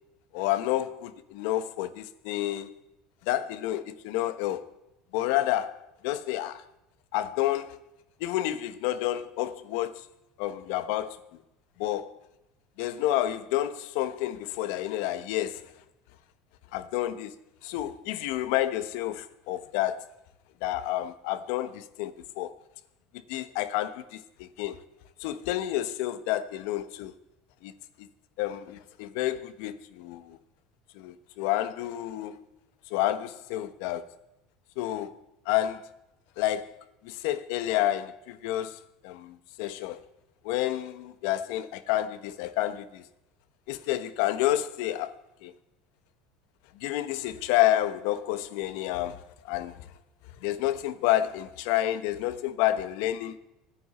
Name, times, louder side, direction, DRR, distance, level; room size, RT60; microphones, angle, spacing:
voice 1, 0.3-2.7 3.3-4.7 5.1-6.6 7.1-7.8 8.2-10.0 10.4-11.2 11.8-12.1 12.8-15.6 16.7-17.3 17.6-20.0 20.6-22.5 23.3-24.8 25.2-27.1 27.6-27.7 28.0-28.1 28.4-30.4 30.9-32.4 32.9-34.0 34.8-35.1 35.4-35.9 36.4-36.8 37.0-40.0 40.4-43.0 43.7-45.1 45.4-45.5 46.8-49.8 50.4-53.3, left 13 dB, 75° left, 1.2 m, -29 dB
25.0 x 10.0 x 4.4 m
cardioid pair, 145°, 0 cm